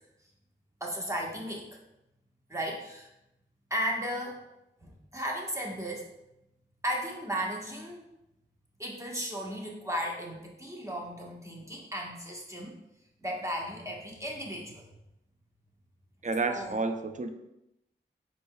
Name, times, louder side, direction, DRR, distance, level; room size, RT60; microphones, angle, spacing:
voice 1, 0.8-1.8 2.5-3.1 3.7-4.4 4.8-6.1 6.8-8.0 8.8-12.7 13.2-14.9 16.5-16.8, equal, 15° right, -2 dB, 1.2 m, -35 dB
voice 2, 16.2-17.3, right 3 dB, 40° right, 7 dB, 0.5 m, -30 dB
5.4 x 4.3 x 2.2 m, 0.89 s
cardioid pair, 45°, 20 cm